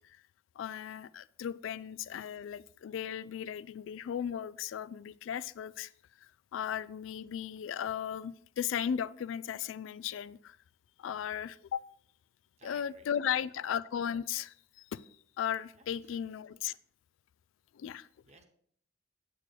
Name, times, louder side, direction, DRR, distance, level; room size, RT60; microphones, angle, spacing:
voice 1, 0.6-5.9 6.2-10.6 11.0-11.8 12.6-15.0 15.4-16.8 17.7-18.1, left 9 dB, 80° left, 17 dB, 0.3 m, -36 dB
voice 2, 12.6-13.4 15.8-16.2 18.3-18.4, right 3 dB, 35° right, 6 dB, 1.0 m, -58 dB
8.9 x 7.6 x 3.2 m, 0.65 s
head